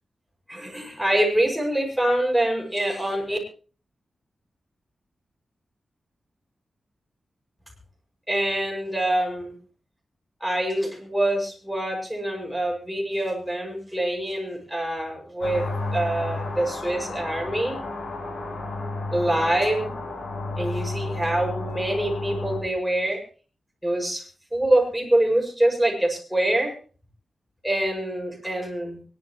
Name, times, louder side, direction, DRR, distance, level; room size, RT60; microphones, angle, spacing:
voice 1, 0.5-3.4 8.3-9.5 10.4-15.6 15.9-17.8 19.1-20.0 20.6-23.2 23.8-24.2 24.5-26.7 27.6-29.0, right 1 dB, 5° right, 0 dB, 6.0 m, -25 dB
sound 1, 15.4-22.6, left 2 dB, 85° left, 5.0 m, -32 dB
24.5 x 11.5 x 3.1 m, 0.39 s
wide cardioid pair, 95°, 0 cm